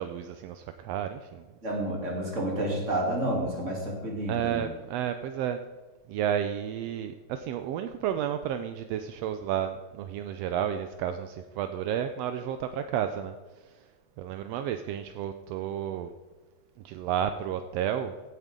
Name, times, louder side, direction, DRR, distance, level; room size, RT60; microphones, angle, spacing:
voice 1, 0.0-1.4 4.3-5.6 6.1-13.4 14.2-16.1 16.8-18.1, right 9 dB, 80° right, 8 dB, 1.5 m, -31 dB
voice 2, 1.6-4.7, right 1 dB, 25° right, -2 dB, 3.1 m, -30 dB
16.0 x 9.2 x 3.7 m, 1.3 s
omnidirectional pair, 3.4 m